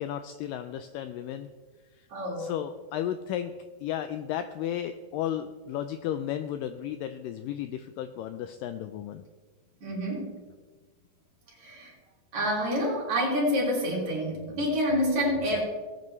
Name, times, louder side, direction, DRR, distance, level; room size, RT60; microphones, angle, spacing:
voice 1, 0.0-1.5 1.9-2.1 2.4-3.5 3.8-9.2, left 10 dB, 90° left, 9 dB, 1.9 m, -34 dB
voice 2, 2.1-2.5 9.8-10.3 11.6-11.9 12.3-15.6, equal, 50° right, -4 dB, 4.1 m, -28 dB
18.5 x 9.2 x 3.2 m, 1.4 s
omnidirectional pair, 4.4 m